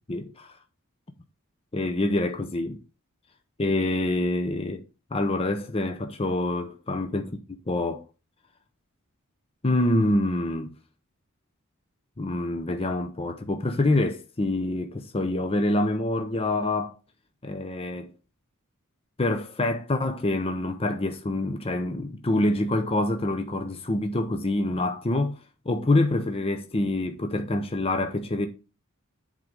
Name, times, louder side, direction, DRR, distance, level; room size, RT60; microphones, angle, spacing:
voice 1, 0.1-0.5 1.7-2.8 3.6-4.8 5.1-8.0 9.6-10.7 12.2-16.9 17.4-18.1 19.2-25.4 25.7-28.5, left 2 dB, 25° left, 0.7 m, -26 dB
7.9 x 3.8 x 5.4 m
head